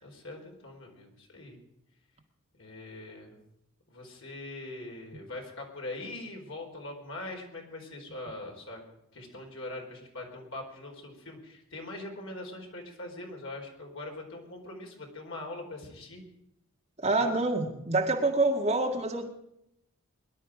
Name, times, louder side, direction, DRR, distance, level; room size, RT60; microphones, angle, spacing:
voice 1, 0.0-1.6 2.6-3.4 3.9-8.8 9.1-16.2 17.0-17.3, left 2 dB, 65° left, 1 dB, 4.5 m, -42 dB
voice 2, 17.0-19.3, right 2 dB, 30° right, 2 dB, 1.8 m, -26 dB
22.0 x 11.5 x 5.0 m, 0.82 s
head